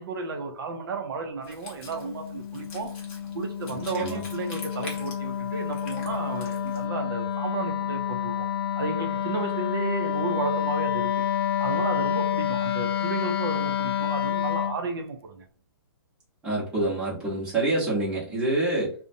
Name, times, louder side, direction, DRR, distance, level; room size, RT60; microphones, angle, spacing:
voice 1, 0.0-3.0 3.3-8.5 8.8-11.3 11.6-15.5, right 4 dB, 60° right, 0.5 m, -33 dB
Wind instrument woodwind instrument, 1.4-6.9, left 3 dB, 25° left, 0.7 m, -45 dB
Wind instrument woodwind instrument 2, 1.9-14.8, left 9 dB, 70° left, 0.4 m, -29 dB
voice 2, 16.4-18.9, right 2 dB, 10° right, 0.8 m, -26 dB
2.5 x 2.1 x 2.6 m
hypercardioid pair, 165°, 13 cm